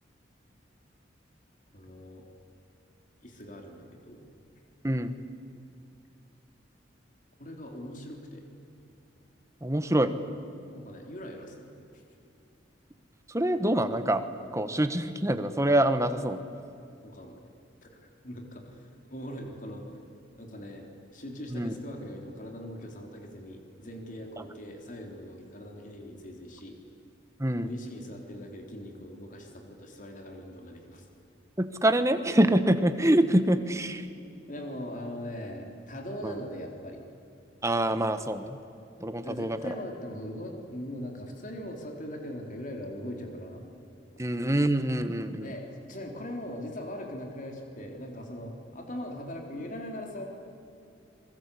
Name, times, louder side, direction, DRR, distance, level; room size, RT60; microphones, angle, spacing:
voice 1, 1.7-2.3 3.2-4.3 7.4-8.4 10.7-12.0 17.0-17.4 17.8-20.0 20.4-26.8 27.6-31.1 34.5-37.0 39.2-43.6 45.4-50.2, equal, 45° left, 2 dB, 3.7 m, -41 dB
voice 2, 9.6-10.1 13.3-14.2 14.5-16.4 21.5-21.7 27.4-27.7 31.6-34.1 36.2-36.3 37.6-38.6 39.0-39.6 44.2-45.5, right 1 dB, 15° right, 10 dB, 1.3 m, -25 dB
27.0 x 22.5 x 8.5 m, 2.7 s
head